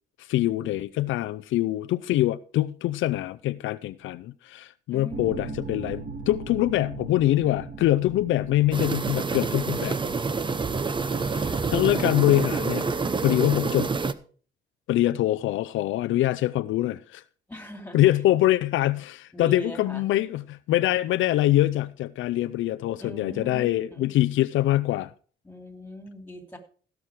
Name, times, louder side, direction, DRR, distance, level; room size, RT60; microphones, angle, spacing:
voice 1, 0.2-10.0 11.1-12.9 13.2-13.9 14.9-17.2 17.9-25.1, left 15 dB, 80° left, 0.5 m, -24 dB
voice 2, 4.9-5.9 17.5-18.0 19.3-20.0 23.0-24.1 25.4-26.6, equal, 10° left, 2.8 m, -40 dB
sound 1, 5.1-14.1, right 4 dB, 50° right, 2.1 m, -41 dB
sound 2, 8.7-14.1, right 4 dB, 25° right, 0.8 m, -27 dB
16.0 x 6.1 x 4.8 m
cardioid pair, 90°, 20 cm